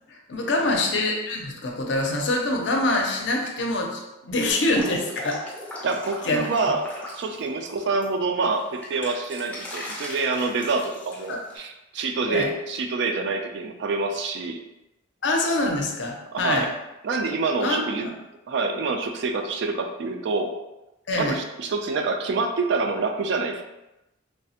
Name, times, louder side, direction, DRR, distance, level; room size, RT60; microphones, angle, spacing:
voice 1, 0.1-5.4 6.2-6.5 11.3-11.4 12.3-12.5 15.2-16.7 17.6-18.1 21.1-21.4, left 2 dB, 60° left, 1 dB, 0.5 m, -25 dB
Drip, 4.5-8.0 8.4-11.6, left 1 dB, 5° left, 0.4 m, -39 dB
voice 2, 5.8-14.6 16.3-16.7 17.0-18.1 18.5-20.6 21.2-23.6, right 3 dB, 60° right, 5 dB, 0.3 m, -27 dB
3.2 x 2.0 x 2.7 m, 0.96 s
head